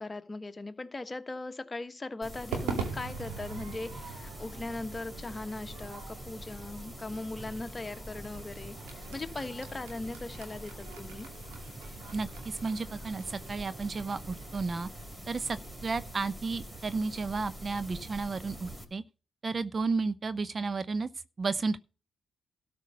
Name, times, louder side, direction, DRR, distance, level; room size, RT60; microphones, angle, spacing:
voice 1, 0.0-11.3, left 2 dB, 30° left, 1.3 m, -39 dB
sound 1, 2.2-18.8, right 1 dB, 15° right, 3.6 m, -45 dB
Crowd / Fireworks, 2.5-16.9, right 6 dB, 85° right, 2.5 m, -44 dB
voice 2, 12.1-14.9 15.3-19.0 19.4-21.1 21.4-21.8, right 4 dB, 40° right, 0.7 m, -32 dB
13.0 x 5.2 x 6.5 m
hypercardioid pair, 50°, 0 cm